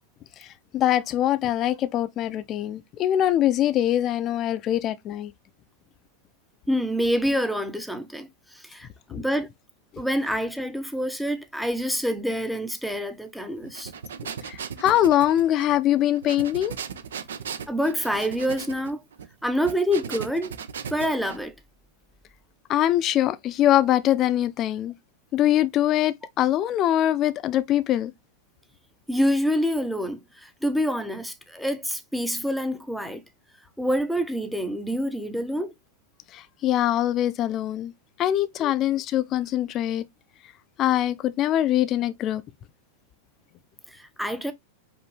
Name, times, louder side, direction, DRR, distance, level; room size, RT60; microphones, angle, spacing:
voice 1, 0.4-5.3 9.1-9.2 14.5-16.7 22.7-24.9 25.3-28.1 36.3-37.9 38.2-40.1 40.8-42.4, left 12 dB, 40° left, 0.5 m, -23 dB
voice 2, 6.7-9.5 10.0-13.9 17.7-19.0 19.4-20.5 20.9-21.5 29.1-33.2 33.8-35.7 38.6-38.7 44.0-44.5, equal, ahead, 0.7 m, -27 dB
sound 1, 13.6-21.4, right 7 dB, 85° right, 0.6 m, -37 dB
5.1 x 2.6 x 3.2 m
hypercardioid pair, 115°, 0 cm